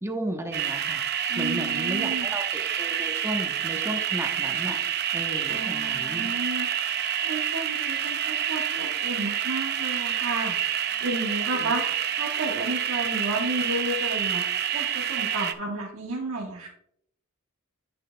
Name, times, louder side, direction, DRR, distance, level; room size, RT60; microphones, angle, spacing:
voice 1, 0.0-1.0 1.4-4.8 5.1-6.3 11.6-11.9, right 1 dB, 15° right, 4 dB, 0.9 m, -34 dB
sound 1, 0.5-15.5, right 9 dB, 50° right, 0.6 m, -28 dB
voice 2, 1.3-2.3 5.5-16.7, right 2 dB, 90° right, -4 dB, 1.4 m, -32 dB
10.5 x 6.9 x 2.2 m, 0.70 s
head